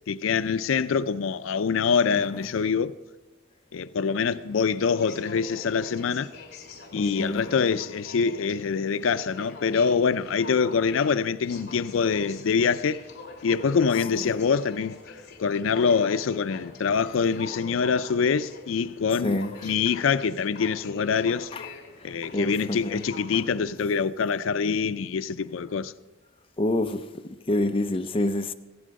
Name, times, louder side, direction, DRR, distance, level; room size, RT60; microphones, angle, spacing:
voice 1, 0.1-2.9 3.7-6.3 6.9-13.1 13.4-15.0 15.4-21.5 22.0-25.9, left 6 dB, 85° left, 0.4 m, -25 dB
voice 2, 2.1-2.5 6.9-7.4 7.7-7.8 14.1-14.3 19.2-19.7 21.5-21.7 22.0-23.0 23.3-23.4 26.6-28.5, left 1 dB, 30° left, 0.6 m, -28 dB
Aircraft, 4.2-23.6, left 3 dB, 60° left, 3.1 m, -44 dB
15.5 x 11.0 x 5.2 m
head